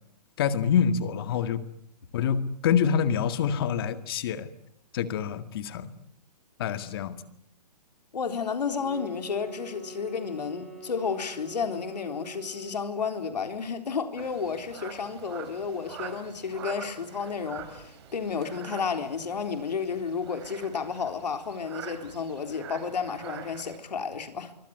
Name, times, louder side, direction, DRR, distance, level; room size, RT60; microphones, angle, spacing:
voice 1, 0.4-1.6 2.1-4.5 4.9-5.9 6.6-7.2, left 7 dB, 35° left, 1.9 m, -26 dB
voice 2, 8.1-24.5, left 6 dB, 80° left, 3.9 m, -32 dB
sound 1, 8.7-12.9, right 3 dB, 5° left, 7.6 m, -45 dB
sound 2, 14.2-23.8, right 8 dB, 40° right, 5.3 m, -44 dB
25.0 x 24.5 x 9.7 m
hypercardioid pair, 165°, 21 cm